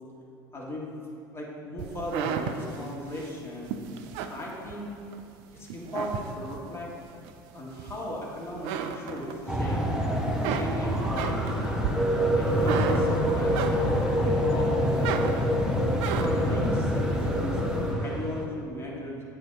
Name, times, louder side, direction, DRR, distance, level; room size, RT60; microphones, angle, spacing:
voice 1, 0.5-0.9 1.3-3.8 4.3-4.9 5.5-6.9 7.5-9.8 10.6-11.4 12.4-13.7 14.2-15.2 16.2-17.6 17.9-19.2, left 1 dB, 20° left, -4 dB, 1.4 m, -36 dB
sound 1, 1.8-5.2 5.6-6.7 7.2-8.2 8.5-9.8 10.1-14.2 14.6-16.6, right 8 dB, 55° right, 0.4 m, -34 dB
sound 2, 9.1-15.9, left 6 dB, 40° left, 0.4 m, -42 dB
sound 3, 9.5-18.5, equal, 5° right, 0.7 m, -26 dB
7.9 x 3.7 x 3.9 m, 2.4 s
figure-of-eight pair, 70°, 12 cm